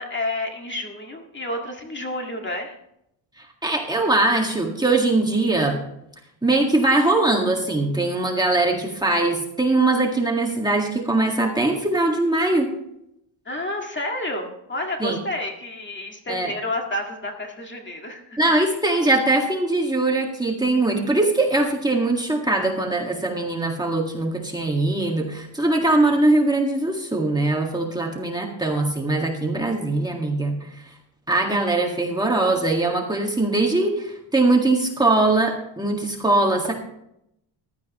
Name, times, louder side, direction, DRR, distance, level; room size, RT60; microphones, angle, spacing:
voice 1, 0.0-2.7 13.5-18.4, left 1 dB, 25° left, 2 dB, 1.9 m, -30 dB
voice 2, 3.4-5.8 6.4-12.7 15.0-15.2 16.3-16.5 18.4-30.9 31.3-36.7, right 2 dB, 10° right, 0 dB, 1.8 m, -21 dB
15.0 x 12.0 x 3.0 m, 0.78 s
cardioid pair, 125°, 47 cm